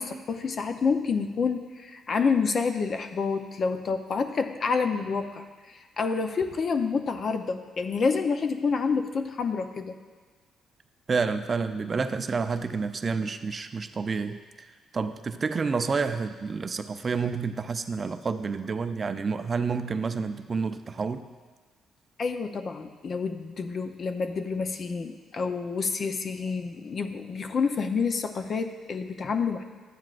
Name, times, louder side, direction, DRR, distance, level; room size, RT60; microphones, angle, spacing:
voice 1, 0.0-10.0 22.2-29.6, left 5 dB, 50° left, 7 dB, 0.7 m, -28 dB
voice 2, 11.1-14.7 14.9-21.3, right 5 dB, 40° right, 9 dB, 0.5 m, -29 dB
13.0 x 9.3 x 2.5 m, 1.4 s
cardioid pair, 90°, 0 cm